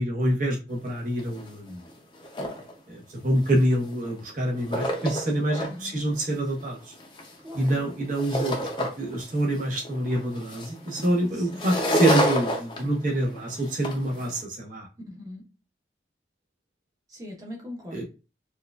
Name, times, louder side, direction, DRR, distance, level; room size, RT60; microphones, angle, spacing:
voice 1, 0.0-1.8 2.9-6.8 7.5-14.9 17.9-18.0, right 1 dB, 45° right, 1.0 m, -26 dB
sound 1, 0.9-1.0 1.2-1.5 1.9-2.7 3.4-4.2 4.5-5.7 6.2-9.2 9.5-14.3, equal, 25° left, 0.6 m, -29 dB
voice 2, 5.6-6.0 7.4-7.9 11.3-11.6 15.0-15.4 17.1-18.0, left 1 dB, 20° right, 0.9 m, -41 dB
4.4 x 2.4 x 2.3 m
head